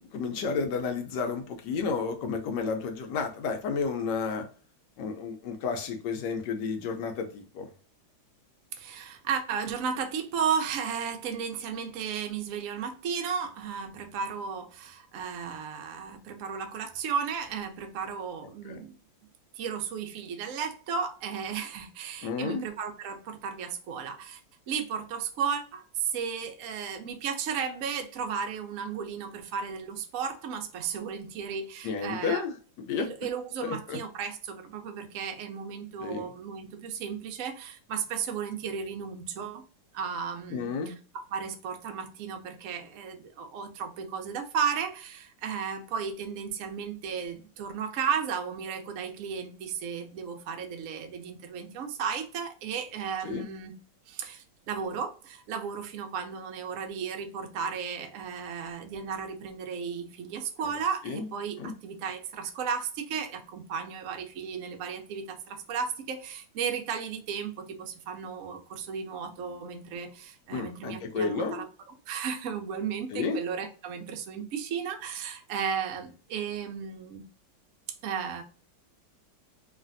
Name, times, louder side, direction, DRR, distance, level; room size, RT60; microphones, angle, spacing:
voice 1, 0.0-4.4 5.0-7.7 18.7-18.8 22.2-22.6 31.8-33.1 33.6-34.0 36.0-36.2 40.5-40.9 53.2-53.4 61.0-61.3 61.6-61.7 70.5-71.6 73.1-73.4, left 5 dB, 70° left, 1.1 m, -31 dB
voice 2, 8.7-19.0 19.6-24.4 24.7-32.4 33.0-39.6 39.9-53.7 54.1-71.6 72.1-77.3 78.0-78.4, right 6 dB, 85° right, 0.7 m, -34 dB
3.2 x 2.4 x 2.5 m
omnidirectional pair, 2.1 m